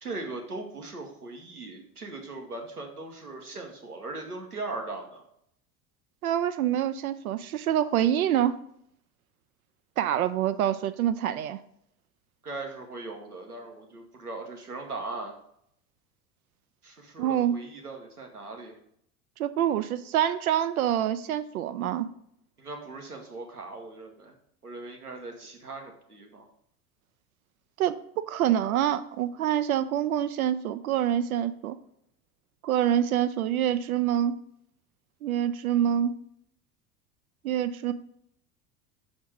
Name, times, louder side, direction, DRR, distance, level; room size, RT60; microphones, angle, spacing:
voice 1, 0.0-5.2 12.4-15.3 16.8-18.8 22.6-24.3 24.6-26.4, right 3 dB, 90° right, 2 dB, 1.1 m, -39 dB
voice 2, 6.2-8.6 10.0-11.6 17.2-17.6 19.4-22.1 27.8-31.8 32.6-34.3 35.2-36.1 37.4-37.9, right 10 dB, 70° right, 12 dB, 0.5 m, -26 dB
6.1 x 4.2 x 4.6 m, 0.71 s
figure-of-eight pair, 75°, 44 cm